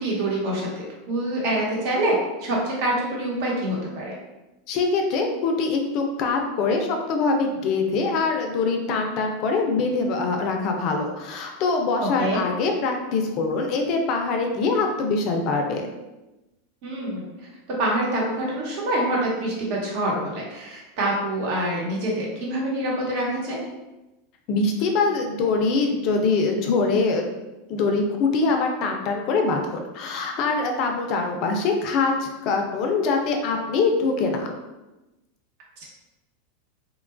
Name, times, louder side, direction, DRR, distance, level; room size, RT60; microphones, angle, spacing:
voice 1, 0.0-4.1 12.0-12.4 16.8-17.3 17.8-23.6 35.8-35.9, right 1 dB, 60° right, -3 dB, 1.0 m, -26 dB
voice 2, 4.7-15.9 24.5-27.3 27.7-34.5, left 3 dB, 50° left, 3 dB, 0.4 m, -23 dB
2.9 x 2.2 x 2.4 m, 1.0 s
supercardioid pair, 135°, 0 cm